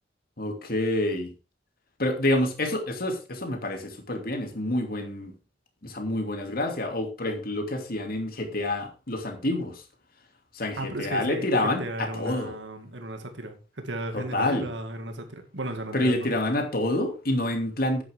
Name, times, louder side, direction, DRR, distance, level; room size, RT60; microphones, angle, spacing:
voice 1, 0.4-1.3 2.0-5.3 5.8-9.8 10.5-12.5 14.1-14.7 15.9-18.0, left 1 dB, 55° left, 4 dB, 2.6 m, -28 dB
voice 2, 10.8-16.3, right 1 dB, 80° right, 6 dB, 2.1 m, -35 dB
10.0 x 9.5 x 3.7 m, 0.31 s
head